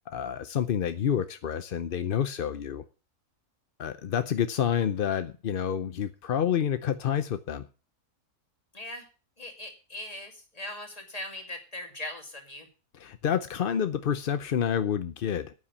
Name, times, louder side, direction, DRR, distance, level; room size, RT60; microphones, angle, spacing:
voice 1, 0.1-2.8 3.8-7.7 12.9-15.5, left 9 dB, 60° left, 0.6 m, -28 dB
voice 2, 8.7-9.1 9.4-12.7, left 1 dB, 25° left, 2.4 m, -40 dB
9.6 x 8.7 x 6.9 m
omnidirectional pair, 1.7 m